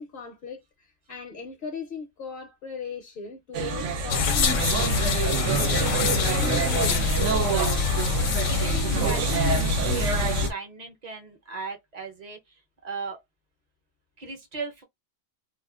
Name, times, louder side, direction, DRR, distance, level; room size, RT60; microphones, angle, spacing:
voice 1, 0.0-4.5 6.0-7.0, left 5 dB, 60° left, 0.7 m, -37 dB
sound 1, 3.5-10.5, right 5 dB, 75° right, 0.9 m, -27 dB
sound 2, 4.1-10.5, left 5 dB, 80° left, 0.9 m, -25 dB
voice 2, 7.7-8.2 8.4-12.4 12.8-13.2 14.2-14.8, right 5 dB, 40° right, 0.6 m, -37 dB
2.4 x 2.3 x 2.3 m
omnidirectional pair, 1.3 m